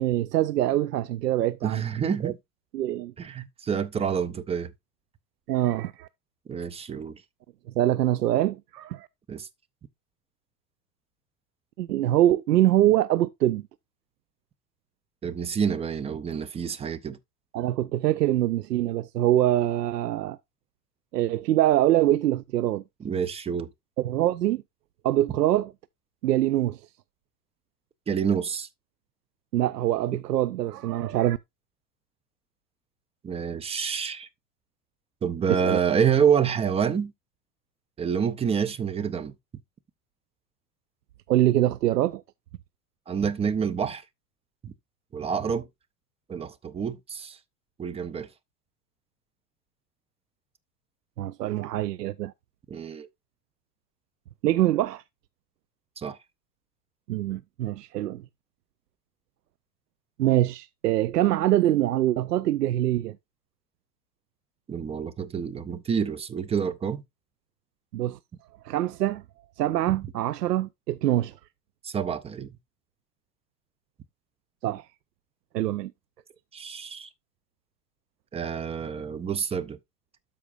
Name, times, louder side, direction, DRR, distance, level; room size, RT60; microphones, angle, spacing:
voice 1, 0.0-1.8 2.2-2.3 2.7-3.1 5.5-6.1 7.8-9.1 11.8-13.6 17.5-20.4 21.1-22.8 24.0-24.6 25.0-25.7 26.2-26.8 29.5-31.4 35.5-35.8 41.3-42.2 51.2-52.3 54.4-55.0 57.1-58.2 60.2-63.2 67.9-68.2 68.6-69.2 69.6-71.3 74.6-74.8 75.5-75.9, right 14 dB, 75° right, 0.6 m, -24 dB
voice 2, 1.6-2.4 3.2-4.7 6.5-7.2 9.3-9.5 15.2-17.2 23.0-23.7 28.1-28.7 33.2-34.3 35.2-37.1 38.0-39.3 43.1-44.0 44.6-44.7 45.1-45.7 46.3-47.4 47.8-48.3 52.7-53.1 56.0-56.2 64.7-67.0 69.9-70.0 71.8-72.5 76.5-77.1 78.3-79.8, right 7 dB, 15° right, 0.5 m, -28 dB
12.5 x 5.0 x 2.5 m
figure-of-eight pair, 90°, 48 cm